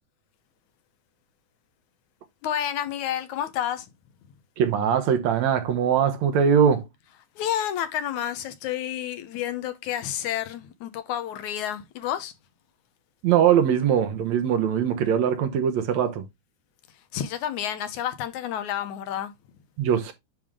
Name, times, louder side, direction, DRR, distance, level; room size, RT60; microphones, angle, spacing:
voice 1, 2.4-3.9 7.4-12.3 17.1-19.3, left 10 dB, 75° left, 2.3 m, -30 dB
voice 2, 4.6-6.8 13.2-16.2 19.8-20.1, right 8 dB, 70° right, 2.1 m, -21 dB
10.5 x 3.6 x 3.6 m
omnidirectional pair, 3.6 m